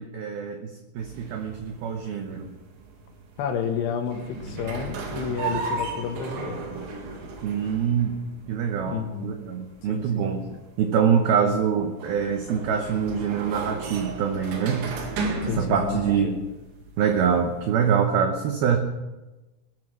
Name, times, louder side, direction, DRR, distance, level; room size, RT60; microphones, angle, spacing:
voice 1, 0.0-2.5 7.4-8.2 8.5-15.0 15.6-16.4 17.0-18.8, right 7 dB, 85° right, 4 dB, 2.1 m, -25 dB
sound 1, 1.0-18.0, right 3 dB, 65° right, 4.1 m, -36 dB
voice 2, 3.4-6.6 8.9-9.3 9.9-10.6 11.4-11.6 15.4-16.4, left 7 dB, 65° left, 5 dB, 3.1 m, -31 dB
20.5 x 8.4 x 6.3 m, 1.1 s
omnidirectional pair, 5.9 m